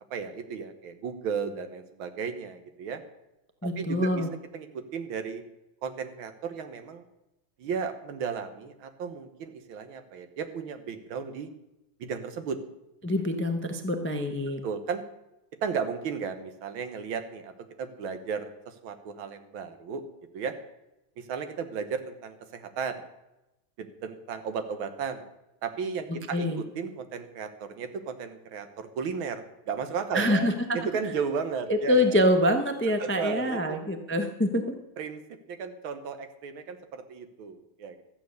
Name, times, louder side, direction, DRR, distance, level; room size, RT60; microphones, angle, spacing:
voice 1, 0.1-3.0 3.6-4.3 4.5-5.4 5.8-7.0 7.6-11.5 12.0-12.6 14.6-15.0 15.6-17.5 17.8-20.0 20.3-20.5 21.2-23.0 23.8-25.2 25.6-32.2 33.0-33.8 35.0-35.2 35.5-38.0, right 6 dB, 85° right, 9 dB, 1.9 m, -34 dB
voice 2, 3.6-4.3 13.0-14.6 26.3-26.6 30.1-30.5 31.0-31.1 31.7-34.6, left 1 dB, 15° left, 6 dB, 0.4 m, -25 dB
13.0 x 8.9 x 6.5 m, 0.93 s
omnidirectional pair, 2.2 m